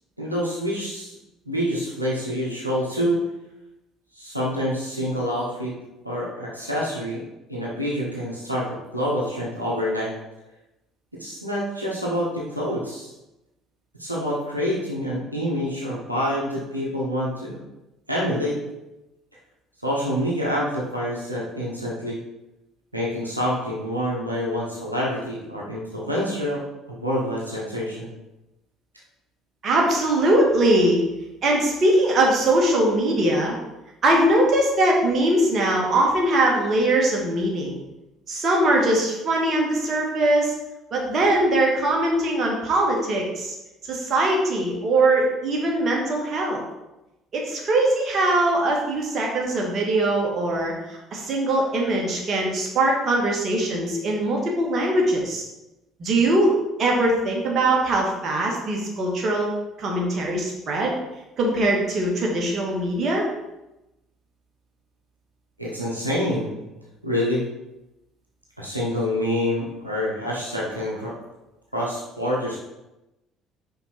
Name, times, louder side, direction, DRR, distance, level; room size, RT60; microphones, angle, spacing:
voice 1, 0.2-1.1 1.5-3.2 4.1-5.7 6.0-7.2 7.5-10.1 11.2-13.1 14.0-17.6 18.1-18.6 19.8-22.2 22.9-26.6 26.9-28.1 65.6-66.6 67.0-67.4 68.6-71.1 71.7-72.6, equal, 90° right, -5 dB, 1.0 m, -27 dB
voice 2, 29.6-31.0 31.4-33.6 34.0-37.8 38.3-40.5 40.9-43.5 43.9-46.7 47.3-50.7 51.1-55.4 56.0-56.5 56.8-59.5 59.8-61.0 61.4-63.2, right 1 dB, 40° right, -1 dB, 1.8 m, -21 dB
5.6 x 5.2 x 4.4 m, 0.97 s
figure-of-eight pair, 55°, 0 cm